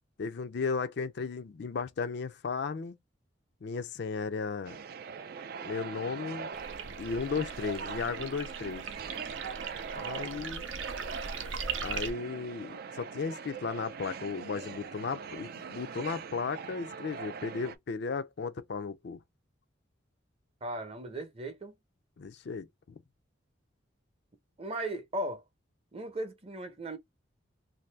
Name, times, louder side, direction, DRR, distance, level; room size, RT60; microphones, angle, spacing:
voice 1, 0.2-3.0 3.6-4.8 5.6-6.5 7.0-8.8 10.0-10.6 11.8-19.2 22.2-23.0, left 5 dB, 60° left, 0.4 m, -35 dB
sound 1, 4.6-17.8, right 6 dB, 50° right, 0.3 m, -42 dB
sound 2, 6.5-12.1, right 5 dB, 85° right, 0.7 m, -40 dB
voice 2, 20.6-21.7 24.6-25.4 25.9-27.0, right 1 dB, 30° right, 0.7 m, -37 dB
2.7 x 2.6 x 3.2 m
head